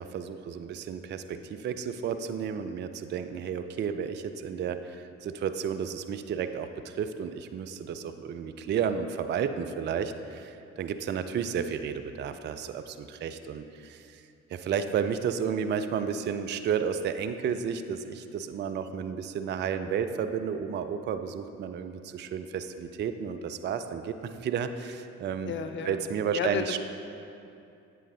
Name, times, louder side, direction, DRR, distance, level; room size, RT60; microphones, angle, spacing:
voice 1, 0.0-14.2 14.5-25.5 25.9-26.8, right 7 dB, 30° right, 9 dB, 0.3 m, -32 dB
voice 2, 25.4-26.0 26.3-26.8, left 7 dB, 30° left, 7 dB, 0.5 m, -32 dB
8.1 x 5.7 x 2.7 m, 2.6 s
hypercardioid pair, 40°, 38 cm